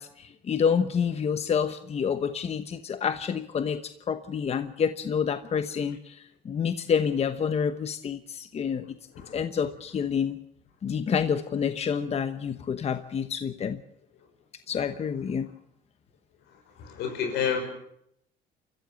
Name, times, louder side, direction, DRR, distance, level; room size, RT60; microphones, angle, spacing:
voice 1, 0.0-3.8 4.1-8.8 9.3-10.4 10.8-13.8 14.7-15.5, left 7 dB, 40° left, 10 dB, 1.0 m, -28 dB
voice 2, 16.8-17.6, left 7 dB, 85° left, 5 dB, 6.0 m, -29 dB
29.5 x 14.5 x 7.1 m, 0.73 s
cardioid pair, 110°, 17 cm